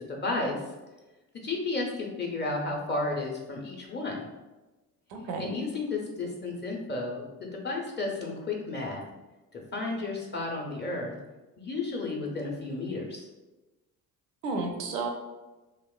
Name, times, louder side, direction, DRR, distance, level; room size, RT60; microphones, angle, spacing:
voice 1, 0.1-0.6 1.4-4.2 5.4-9.0 9.5-11.1 11.6-13.2, left 3 dB, 25° left, 0 dB, 0.6 m, -32 dB
voice 2, 5.1-5.6 14.4-15.1, right 3 dB, 75° right, 4 dB, 0.5 m, -32 dB
2.9 x 2.0 x 2.3 m, 1.1 s
hypercardioid pair, 45°, 47 cm